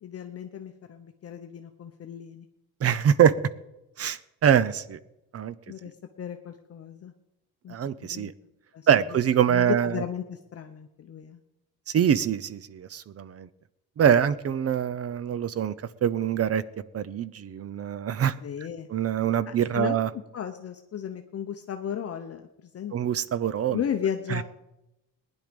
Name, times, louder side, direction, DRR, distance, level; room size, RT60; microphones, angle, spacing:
voice 1, 0.0-2.5 5.7-7.1 7.6-7.8 8.1-8.3 8.7-8.9 9.4-11.4 18.4-18.9 19.5-23.1 23.7-24.4, left 9 dB, 40° left, 6 dB, 0.8 m, -35 dB
voice 2, 2.8-3.3 4.0-5.0 5.3-5.5 7.7-8.3 8.9-10.0 11.9-13.5 14.0-15.7 16.0-16.6 16.9-18.3 18.9-20.1 22.9-23.8 24.3-24.4, right 9 dB, 40° right, 17 dB, 0.6 m, -24 dB
19.0 x 10.5 x 5.2 m, 0.92 s
cardioid pair, 150°, 36 cm